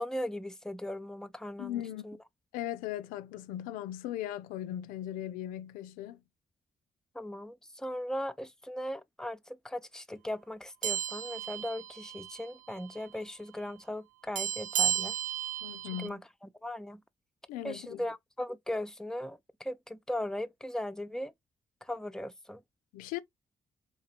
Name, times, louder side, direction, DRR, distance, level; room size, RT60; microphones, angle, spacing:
voice 1, 0.0-2.2 7.1-15.2 16.0-16.2 16.6-17.0 17.6-21.3 21.8-22.6, left 1 dB, 5° left, 0.6 m, -38 dB
voice 2, 1.6-2.0 2.5-6.2 15.6-16.2 17.5-18.0 22.9-23.2, left 12 dB, 90° left, 0.4 m, -38 dB
sound 1, 10.8-12.5 12.8-13.0 14.4-16.1, right 10 dB, 70° right, 0.4 m, -34 dB
3.7 x 2.8 x 2.8 m
supercardioid pair, 45°, 14 cm